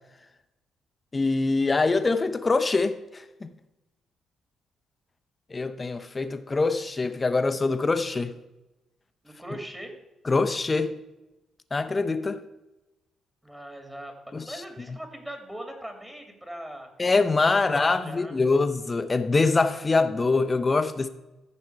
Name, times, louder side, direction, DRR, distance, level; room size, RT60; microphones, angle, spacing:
voice 1, 1.1-3.5 5.5-8.3 10.3-11.0 11.7-12.4 14.3-14.4 17.0-21.1, left 3 dB, 30° left, 0.9 m, -24 dB
voice 2, 9.2-9.9 13.4-16.9 17.5-18.4, right 1 dB, 10° right, 2.3 m, -40 dB
14.5 x 5.5 x 4.6 m
cardioid pair, 80°, 0 cm